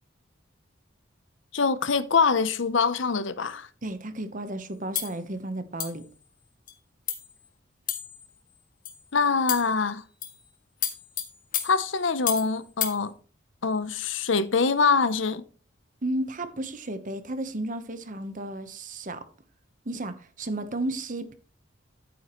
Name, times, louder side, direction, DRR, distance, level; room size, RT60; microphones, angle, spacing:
voice 1, 1.5-3.7 9.1-10.0 11.6-13.1 13.6-15.4, left 5 dB, 70° left, 0.8 m, -24 dB
voice 2, 3.8-6.0 16.0-19.2 19.8-21.3, right 1 dB, 40° right, 1.0 m, -33 dB
sound 1, 5.0-5.2 5.8-6.1 6.7-6.8 7.1-7.3 7.9-8.3 8.9-9.0 9.5-9.8 10.2-10.4 10.8-12.5 12.8-13.0, left 10 dB, 45° left, 1.7 m, -31 dB
11.0 x 9.2 x 3.1 m
head